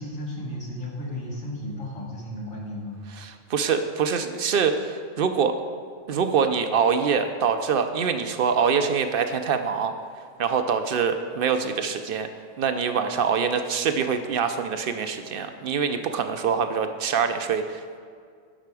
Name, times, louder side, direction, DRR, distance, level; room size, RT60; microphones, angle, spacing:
voice 1, 0.0-3.0, left 1 dB, 75° left, -3 dB, 2.2 m, -34 dB
voice 2, 3.2-5.6 6.1-9.9 10.4-12.3 12.6-18.0, right 6 dB, 60° right, 8 dB, 0.6 m, -24 dB
11.5 x 5.7 x 4.8 m, 2.1 s
omnidirectional pair, 1.4 m